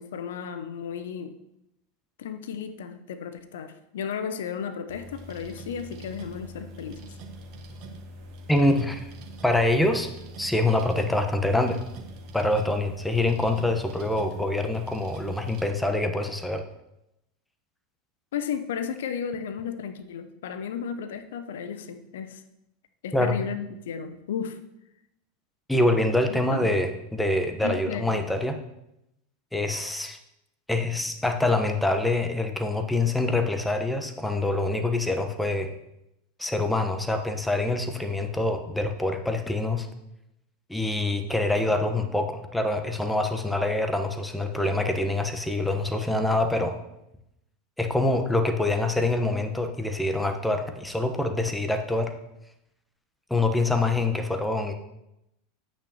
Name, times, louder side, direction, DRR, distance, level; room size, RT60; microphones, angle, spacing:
voice 1, 0.0-1.3 2.2-7.2 18.3-22.4 23.0-24.6 26.2-26.7 27.6-28.2, left 7 dB, 65° left, 9 dB, 0.7 m, -34 dB
sound 1, 4.9-15.7, right 1 dB, 45° right, 1.5 m, -43 dB
voice 2, 8.5-9.1 9.4-10.1 10.4-11.8 12.3-16.6 23.1-23.3 25.7-28.6 29.5-30.2 30.7-35.7 36.4-39.9 40.7-46.8 47.8-52.1 53.3-54.7, left 2 dB, 5° left, 5 dB, 1.1 m, -25 dB
10.0 x 8.7 x 3.0 m, 0.85 s
figure-of-eight pair, 85°, 0 cm